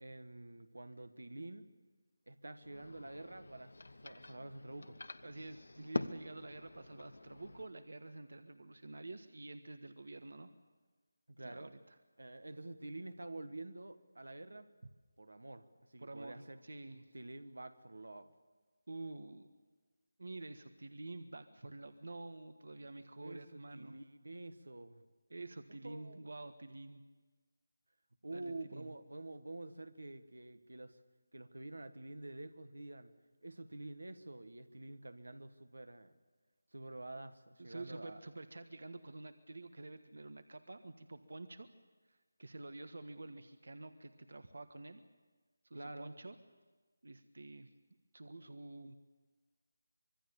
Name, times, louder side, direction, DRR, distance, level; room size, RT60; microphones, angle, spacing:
voice 1, 0.0-1.6 2.3-3.8 4.0-5.0 11.3-11.7 12.2-14.7 15.2-16.6 17.1-18.3 23.2-25.0 25.8-26.2 28.2-31.0 31.3-33.1 33.4-36.1 36.7-38.2 45.7-46.1, right 2 dB, 85° right, 10 dB, 1.7 m, -48 dB
sound 1, 2.6-7.7, left 2 dB, 80° left, 1.1 m, -45 dB
voice 2, 5.2-10.5 11.4-11.9 16.0-17.1 18.9-19.5 20.2-24.0 25.3-27.0 28.3-28.9 37.6-41.7 42.1-45.0 45.6-46.4 47.0-47.7 48.1-49.0, right 2 dB, 70° right, 9 dB, 1.5 m, -49 dB
25.0 x 22.0 x 7.2 m, 1.3 s
figure-of-eight pair, 165°, 0 cm